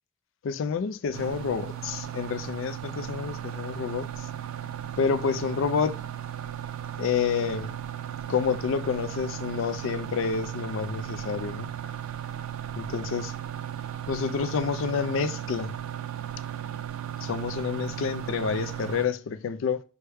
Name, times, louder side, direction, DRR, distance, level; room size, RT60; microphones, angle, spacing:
voice 1, 0.4-4.1 5.0-6.0 7.0-7.7 8.3-11.7 12.8-13.3 14.1-15.7 17.2-19.8, left 6 dB, 65° left, 0.3 m, -28 dB
sound 1, 1.1-19.1, right 10 dB, 75° right, 0.4 m, -36 dB
5.5 x 2.1 x 3.3 m
head